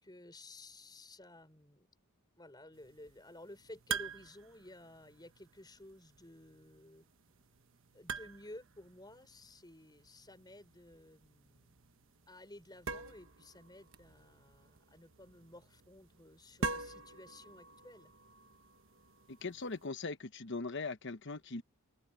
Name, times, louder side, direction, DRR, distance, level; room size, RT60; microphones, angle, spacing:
voice 1, 0.0-1.9 2.4-7.0 7.9-18.1, left 1 dB, 20° left, 5.5 m, -54 dB
sound 1, 2.7-19.9, right 4 dB, 60° right, 1.2 m, -47 dB
voice 2, 19.3-21.6, left 3 dB, 55° left, 1.0 m, -40 dB
open air
head